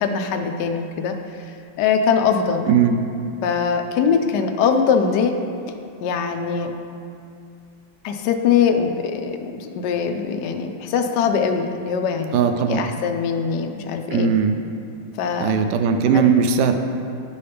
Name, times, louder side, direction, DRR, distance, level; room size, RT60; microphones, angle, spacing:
voice 1, 0.0-1.5 1.8-2.7 3.4-5.3 6.0-6.7 8.0-12.4 12.7-14.3 15.2-15.5 16.1-16.2, left 6 dB, 70° left, 5 dB, 1.0 m, -22 dB
voice 2, 2.7-3.0 12.3-12.9 14.1-14.6 15.4-16.7, right 6 dB, 70° right, 7 dB, 1.0 m, -18 dB
11.0 x 5.6 x 3.4 m, 2.5 s
omnidirectional pair, 2.1 m